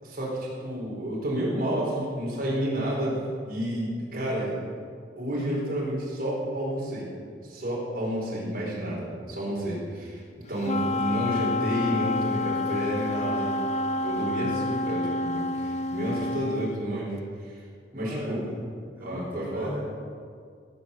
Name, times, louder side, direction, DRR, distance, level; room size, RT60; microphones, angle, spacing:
voice 1, 0.0-4.6 5.2-7.1 7.4-10.2 10.5-13.6 13.9-17.2 17.4-17.6 17.9-18.4 19.0-19.7, right 1 dB, 50° right, -5 dB, 4.5 m, -30 dB
Wind instrument woodwind instrument, 10.6-16.7, left 2 dB, 35° left, 0.5 m, -28 dB
voice 2, 10.6-11.1 17.9-18.6 18.9-19.9, equal, 10° right, -9 dB, 3.1 m, -38 dB
16.5 x 8.0 x 7.3 m, 2.2 s
head